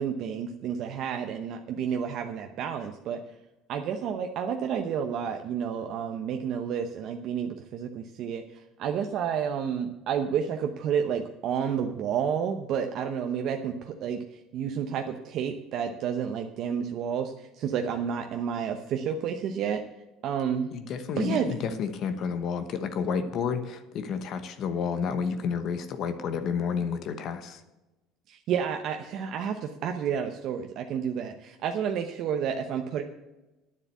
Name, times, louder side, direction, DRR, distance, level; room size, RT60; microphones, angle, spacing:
voice 1, 0.0-3.2 3.7-19.8 20.2-20.7 21.2-21.5 28.3-33.0, right 7 dB, 55° right, 5 dB, 0.9 m, -30 dB
voice 2, 20.7-27.6, left 6 dB, 50° left, 9 dB, 1.0 m, -30 dB
9.9 x 7.4 x 8.3 m, 1.0 s
cardioid pair, 130°, 0 cm